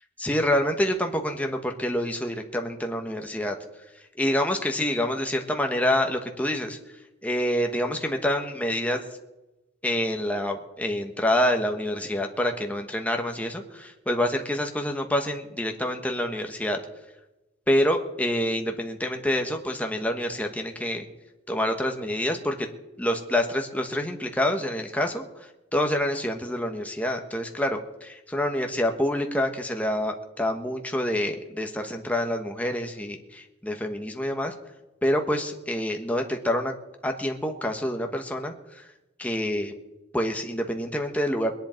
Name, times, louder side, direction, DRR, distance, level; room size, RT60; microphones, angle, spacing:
voice 1, 0.2-3.6 4.2-6.8 7.2-9.0 9.8-16.8 17.7-21.0 21.5-22.7 23.0-25.2 25.7-34.5 35.0-36.7 37.0-38.9 39.2-39.7 40.1-41.5, left 1 dB, 5° left, 4 dB, 1.3 m, -27 dB
21.5 x 10.5 x 4.5 m, 1.0 s
head